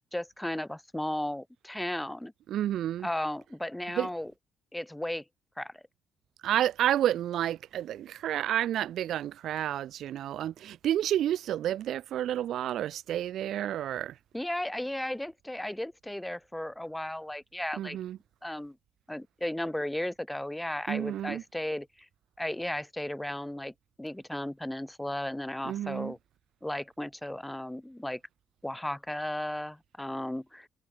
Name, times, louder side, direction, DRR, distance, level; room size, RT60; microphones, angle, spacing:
voice 1, 0.1-2.3 3.0-4.3 4.7-5.2 5.6-5.8 14.3-18.0 18.4-18.8 19.1-21.9 22.4-23.7 24.0-26.2 26.6-28.2 28.6-30.7, left 1 dB, 5° left, 5.1 m, -35 dB
voice 2, 2.5-3.1 3.9-4.1 6.4-14.1 17.8-18.2 20.9-21.4 25.6-26.1, right 11 dB, 75° right, 2.2 m, -30 dB
cardioid pair, 90°, 0 cm